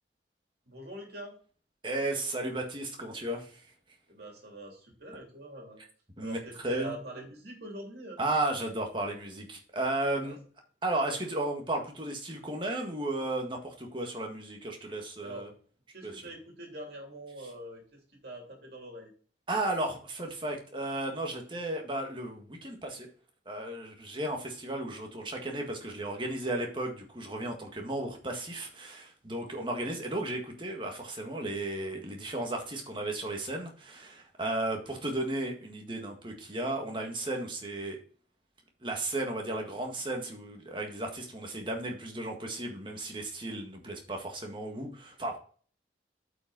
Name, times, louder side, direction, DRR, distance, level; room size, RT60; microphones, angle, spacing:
voice 1, 0.7-1.4 4.1-5.8 6.2-8.2 10.2-10.4 11.1-11.2 15.2-15.5 15.9-19.1, right 1 dB, 60° right, 1 dB, 3.0 m, -44 dB
voice 2, 1.8-3.6 6.2-6.4 6.6-6.9 8.2-10.4 10.8-15.5 16.0-16.2 19.5-23.1 23.4-38.0 38.8-45.4, right 2 dB, 25° right, 2 dB, 1.7 m, -34 dB
8.2 x 5.2 x 4.0 m, 0.43 s
head